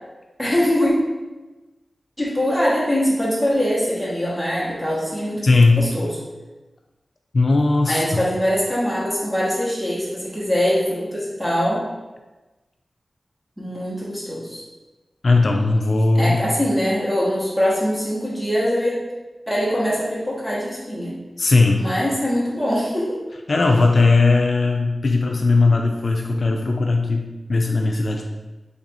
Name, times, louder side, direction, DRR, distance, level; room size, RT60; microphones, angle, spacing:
voice 1, 0.4-0.9 2.2-5.5 5.8-6.2 7.9-11.8 13.6-14.6 16.1-19.0 19.5-21.2 21.8-23.2, equal, ahead, -7 dB, 1.0 m, -22 dB
voice 2, 5.4-5.8 7.3-8.0 15.2-16.4 21.4-21.8 23.5-28.2, left 3 dB, 65° left, 2 dB, 0.3 m, -18 dB
3.3 x 2.5 x 4.0 m, 1.2 s
wide cardioid pair, 60°, 0 cm